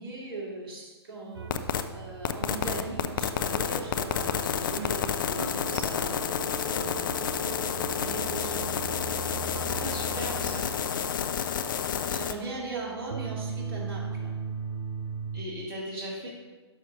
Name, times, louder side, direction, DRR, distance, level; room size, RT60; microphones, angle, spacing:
voice 1, 0.0-7.3 7.8-8.7 12.1-14.4, right 2 dB, 50° right, -2 dB, 2.5 m, -40 dB
sound 1, 1.3-15.4, right 6 dB, 70° right, 0.7 m, -39 dB
sound 2, 1.5-1.8 2.2-12.3, left 8 dB, 45° left, 0.6 m, -30 dB
voice 2, 9.5-10.7 15.3-16.3, right 1 dB, 35° right, -6 dB, 2.0 m, -38 dB
11.5 x 6.1 x 3.9 m, 1.3 s
figure-of-eight pair, 120°, 14 cm